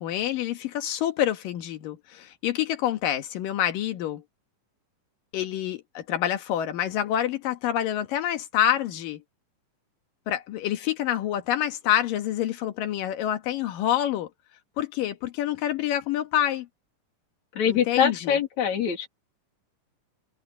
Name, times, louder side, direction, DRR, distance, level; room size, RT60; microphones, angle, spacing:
voice 1, 0.0-4.2 5.3-9.2 10.3-14.3 14.8-16.7 17.7-18.4, left 11 dB, 85° left, 3.2 m, -27 dB
voice 2, 17.6-19.1, left 8 dB, 60° left, 4.0 m, -23 dB
omnidirectional pair, 3.8 m